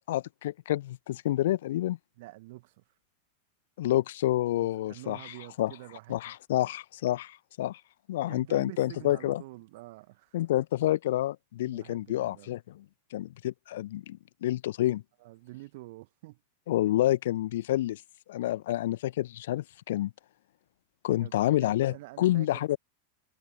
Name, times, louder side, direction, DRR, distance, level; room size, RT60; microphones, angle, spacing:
voice 1, 0.1-2.0 3.8-5.7 6.1-7.8 8.1-9.4 10.3-12.8 13.1-15.0 16.7-18.0 18.3-20.1 21.0-22.8, left 14 dB, 55° left, 1.3 m, -28 dB
voice 2, 2.2-2.8 4.6-6.4 8.3-10.4 11.6-12.5 15.2-16.4 21.2-22.6, right 20 dB, 50° right, 2.0 m, -47 dB
figure-of-eight pair, 90°, 0 cm